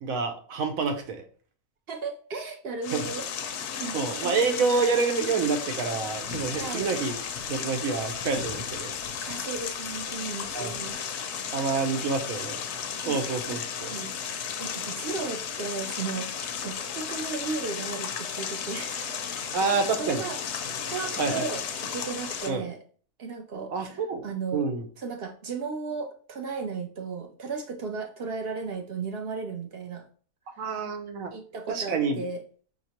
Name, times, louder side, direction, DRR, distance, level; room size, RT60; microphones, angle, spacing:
voice 1, 0.0-1.2 2.9-3.0 3.9-7.1 7.5-9.0 10.5-10.7 11.5-12.6 13.0-13.9 19.5-20.3 21.2-21.5 22.5-22.7 23.7-24.3 24.5-24.9 30.6-31.3 31.7-32.2, right 4 dB, 85° right, 6 dB, 1.2 m, -28 dB
voice 2, 1.9-3.3 3.8-4.0 4.2-4.6 6.6-6.9 9.2-11.0 11.4-11.5 13.1-13.6 13.9-14.2 14.6-19.6 20.0-20.4 20.8-22.8 23.2-24.6 25.0-30.1 30.5-30.6 31.3-32.4, right 4 dB, 60° right, 5 dB, 0.7 m, -35 dB
sound 1, 2.8-22.5, left 7 dB, 65° left, 0.8 m, -34 dB
5.3 x 2.9 x 2.8 m, 0.43 s
omnidirectional pair, 1.4 m